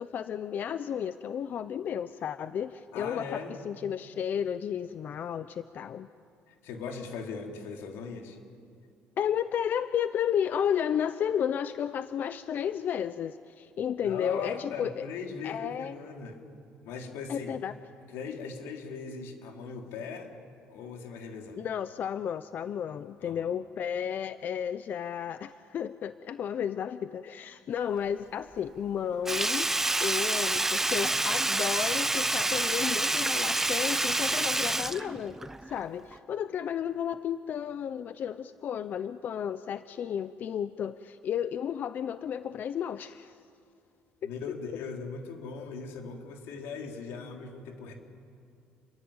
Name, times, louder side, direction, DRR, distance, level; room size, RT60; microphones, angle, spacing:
voice 1, 0.0-6.1 9.2-15.1 15.4-16.0 17.3-17.7 21.6-29.7 30.0-35.4 35.7-43.3 44.2-44.3, left 8 dB, 50° left, 12 dB, 0.7 m, -32 dB
voice 2, 2.9-3.6 6.5-8.4 14.0-16.4 16.8-17.6 18.1-20.3 20.7-21.6 23.2-23.5 44.2-47.9, left 5 dB, 90° left, 2 dB, 3.8 m, -39 dB
Sink (filling or washing), 29.3-35.8 36.1-36.2, right 2 dB, 10° right, 0.8 m, -28 dB
29.0 x 22.5 x 8.8 m, 2.4 s
cardioid pair, 125°, 4 cm